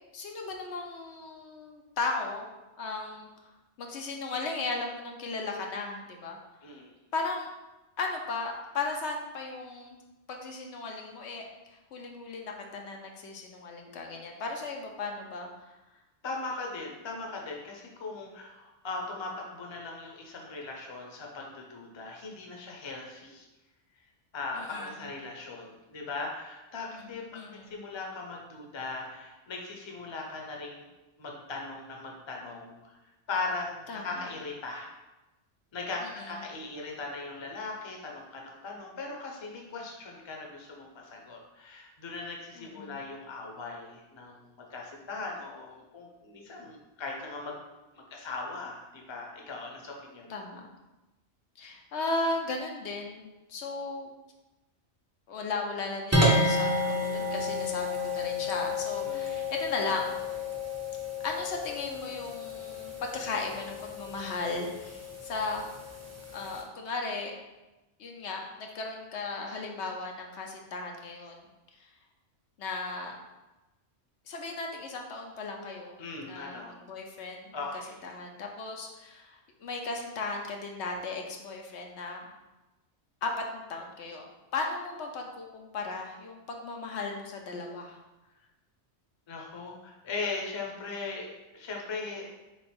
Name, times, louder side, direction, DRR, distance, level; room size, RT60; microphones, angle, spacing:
voice 1, 0.1-2.5 2.8-3.3 3.8-6.4 7.1-7.5 8.0-9.9 10.3-15.5 24.5-24.9 26.9-27.8 33.9-34.3 36.0-36.3 42.6-43.0 50.3-50.6 51.6-54.1 55.3-60.2 61.2-65.7 66.3-67.3 68.0-71.4 72.6-73.1 74.3-77.5 78.0-82.2 83.2-88.0, left 3 dB, 80° left, 1 dB, 1.0 m, -36 dB
voice 2, 16.2-23.5 24.3-30.9 31.2-32.9 33.3-34.9 35.7-47.6 47.9-50.4 59.1-59.3 76.0-76.8 77.5-78.0 89.3-92.3, left 3 dB, 30° left, 0 dB, 0.6 m, -39 dB
sound 1, 56.1-66.6, left 2 dB, 20° right, 0.5 m, -31 dB
3.7 x 3.3 x 4.3 m, 1.1 s
omnidirectional pair, 1.2 m